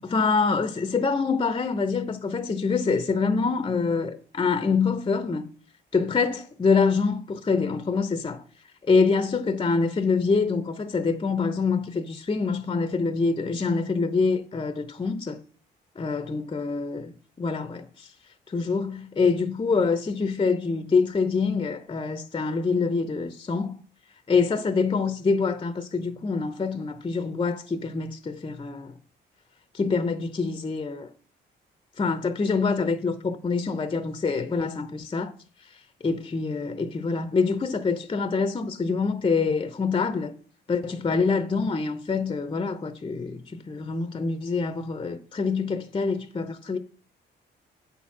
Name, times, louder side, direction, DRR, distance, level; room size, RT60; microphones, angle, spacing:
voice 1, 0.0-5.5 5.9-8.4 8.8-15.4 16.0-17.1 17.4-18.1 18.5-23.8 24.3-29.0 29.7-31.1 32.0-35.3 36.0-40.3 40.7-46.8, left 4 dB, 25° left, 0.7 m, -25 dB
8.0 x 4.3 x 6.0 m
cardioid pair, 90°, 20 cm